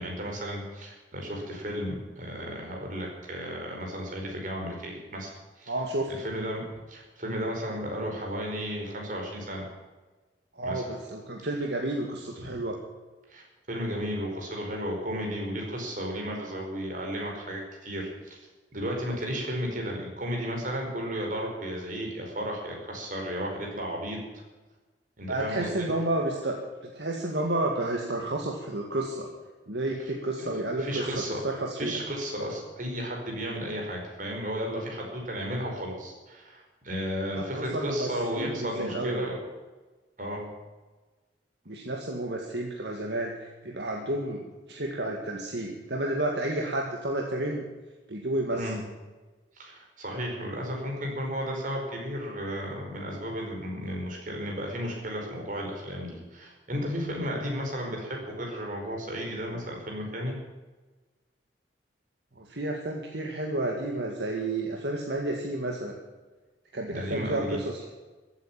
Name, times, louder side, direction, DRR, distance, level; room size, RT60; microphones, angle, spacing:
voice 1, 0.0-5.7 6.1-9.7 10.6-10.8 12.4-12.6 13.3-18.4 18.7-24.2 25.2-25.9 30.0-30.1 30.4-30.5 30.8-31.4 31.8-39.4 40.2-40.5 48.5-48.8 49.5-60.3 66.9-67.6, equal, 45° right, 0 dB, 5.0 m, -34 dB
voice 2, 5.7-6.1 10.6-12.8 25.3-26.6 26.9-29.3 29.7-31.9 37.5-39.2 41.7-47.6 48.1-48.7 62.4-66.0 66.7-67.8, right 1 dB, 70° right, 1 dB, 1.9 m, -31 dB
15.0 x 9.1 x 8.9 m, 1.2 s
head